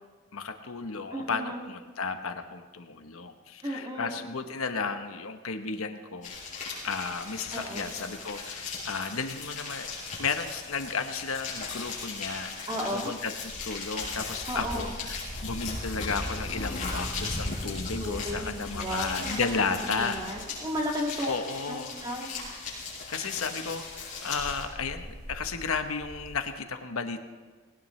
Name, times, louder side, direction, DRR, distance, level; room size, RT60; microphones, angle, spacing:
voice 1, 0.3-6.4 6.8-9.9 10.2-13.3 13.6-20.2 21.3-22.0 23.1-27.2, left 4 dB, 85° left, 7 dB, 1.0 m, -33 dB
voice 2, 1.1-1.6 3.6-4.2 7.5-7.9 12.7-13.1 14.5-14.9 18.0-21.3 21.7-22.3, equal, 20° right, -1 dB, 2.2 m, -34 dB
sound 1, 6.2-24.6, left 4 dB, 35° left, 5.8 m, -38 dB
sound 2, 10.6-10.7 11.0-11.1 11.5-11.6 11.9-12.4 12.8-20.8 21.1-21.2 22.3-22.5 23.6-26.3, equal, 10° left, 6.3 m, -41 dB
19.5 x 18.5 x 3.2 m, 1.4 s
head